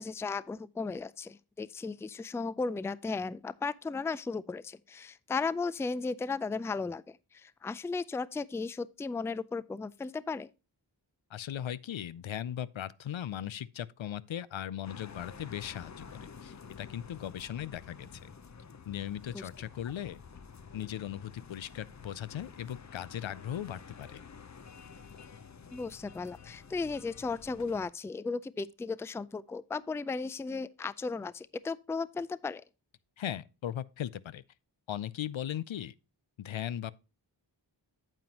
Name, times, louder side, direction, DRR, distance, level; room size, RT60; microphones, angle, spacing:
voice 1, 0.0-10.5 19.3-19.5 25.7-32.6, left 4 dB, 5° left, 0.3 m, -35 dB
voice 2, 11.3-16.1 16.4-18.2 18.9-20.2 20.7-24.2 33.2-34.4 34.9-35.9 36.4-36.9, left 10 dB, 80° left, 0.5 m, -38 dB
sound 1, 14.8-27.9, left 6 dB, 35° left, 0.7 m, -50 dB
9.1 x 7.7 x 2.9 m
wide cardioid pair, 50°, 46 cm